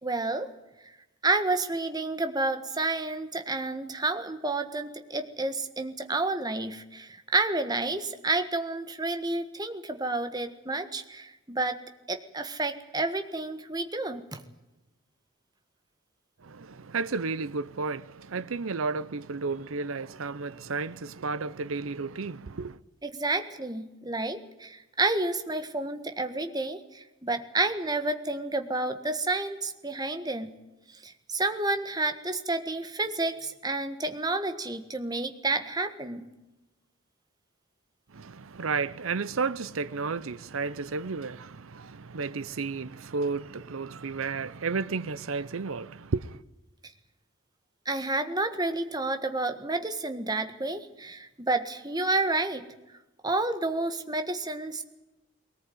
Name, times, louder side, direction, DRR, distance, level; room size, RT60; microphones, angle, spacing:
voice 1, 0.0-0.5 1.2-11.8 12.1-14.4 23.0-30.5 31.0-36.3 47.8-52.6 53.2-54.8, right 2 dB, 20° right, 1.6 m, -30 dB
voice 2, 16.5-22.8 38.1-46.4, right 4 dB, 85° right, 0.7 m, -32 dB
20.5 x 18.5 x 9.4 m
head